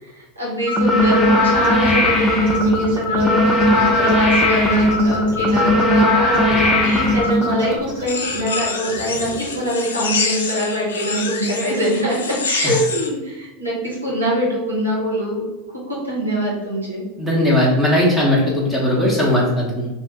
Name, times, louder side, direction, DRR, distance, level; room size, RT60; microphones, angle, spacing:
voice 1, 0.0-15.4 15.9-17.0, equal, 85° right, -6 dB, 1.0 m, -23 dB
sound 1, 0.7-7.8, left 1 dB, 15° left, 0.5 m, -17 dB
sound 2, 1.4-2.2 2.5-6.0 6.3-8.4 8.9-9.6, right 2 dB, 65° right, 1.3 m, -32 dB
sound 3, 8.1-13.1, left 4 dB, 70° left, 0.4 m, -26 dB
voice 2, 17.2-19.9, left 1 dB, 5° right, -6 dB, 0.9 m, -18 dB
2.7 x 2.4 x 3.6 m, 1.1 s
figure-of-eight pair, 85°, 0 cm